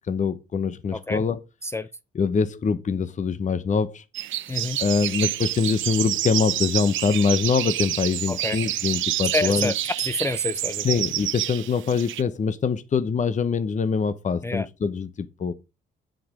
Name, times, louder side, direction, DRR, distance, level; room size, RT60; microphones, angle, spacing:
voice 1, 0.1-1.4 2.1-4.0 4.8-9.7 10.8-15.5, left 5 dB, 40° left, 0.9 m, -24 dB
voice 2, 0.9-1.2 1.6-1.9 4.5-4.8 8.3-8.6 9.3-11.0 14.4-14.7, left 2 dB, 15° left, 0.5 m, -28 dB
sound 1, 4.1-12.2, right 13 dB, 75° right, 0.7 m, -28 dB
7.6 x 7.6 x 5.0 m
cardioid pair, 90°, 20 cm